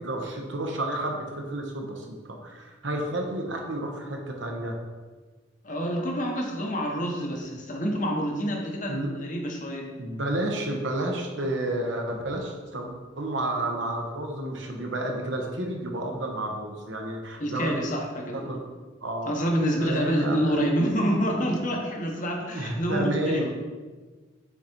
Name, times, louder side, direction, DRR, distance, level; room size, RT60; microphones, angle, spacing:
voice 1, 0.0-4.7 8.9-9.2 10.0-12.9 13.2-17.7 18.3-18.6 19.0-19.3 19.8-20.6 22.5-23.5, right 1 dB, 70° right, 1 dB, 1.1 m, -31 dB
voice 2, 5.6-10.0 17.4-18.6 19.2-23.5, equal, 40° left, 1 dB, 1.1 m, -27 dB
7.1 x 4.2 x 4.5 m, 1.4 s
head